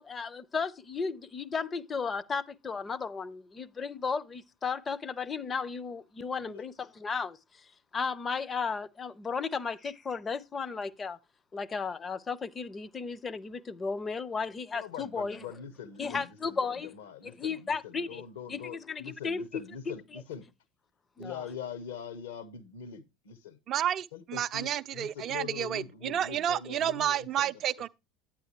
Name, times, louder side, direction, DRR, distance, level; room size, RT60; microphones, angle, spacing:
voice 1, 0.0-7.4 7.9-11.2 11.5-15.5 16.0-17.0 17.2-18.2 18.5-19.9 21.2-21.5, left 5 dB, 25° left, 0.6 m, -34 dB
voice 2, 14.7-20.4 21.2-23.6 24.1-27.5, left 7 dB, 65° left, 0.9 m, -43 dB
voice 3, 23.7-27.9, right 10 dB, 40° right, 0.4 m, -30 dB
9.4 x 8.8 x 2.9 m
figure-of-eight pair, 70°, 0 cm